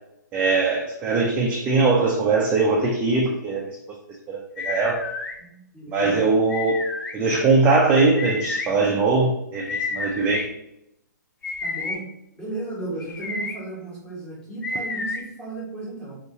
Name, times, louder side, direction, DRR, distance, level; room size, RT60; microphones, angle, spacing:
voice 1, 0.3-3.8 4.3-5.0 5.9-6.8 7.1-10.5, right 3 dB, 10° right, -1 dB, 0.3 m, -21 dB
sound 1, 4.6-5.3 6.5-7.1 8.2-8.7 9.6-10.5 11.4-12.0 13.0-13.5 14.6-15.2, left 3 dB, 75° left, 0.6 m, -30 dB
voice 2, 5.4-6.3 11.6-12.0 12.4-16.2, right 2 dB, 10° left, -6 dB, 1.2 m, -35 dB
2.8 x 2.7 x 3.7 m, 0.79 s
hypercardioid pair, 150°, 10 cm